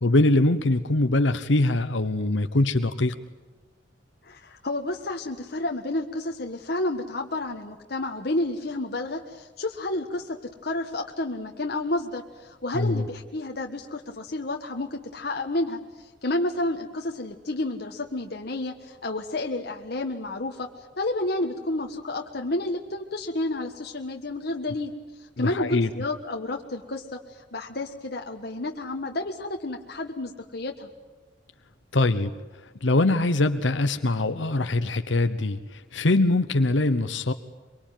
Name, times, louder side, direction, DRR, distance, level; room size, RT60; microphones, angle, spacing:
voice 1, 0.0-3.2 12.7-13.0 25.4-25.9 31.9-32.3 32.8-37.3, left 2 dB, 80° left, 9 dB, 1.0 m, -23 dB
voice 2, 4.2-10.4 10.6-20.7 21.0-24.9 25.4-30.9, left 2 dB, 60° left, 2 dB, 1.5 m, -30 dB
23.5 x 23.5 x 9.2 m, 1.2 s
head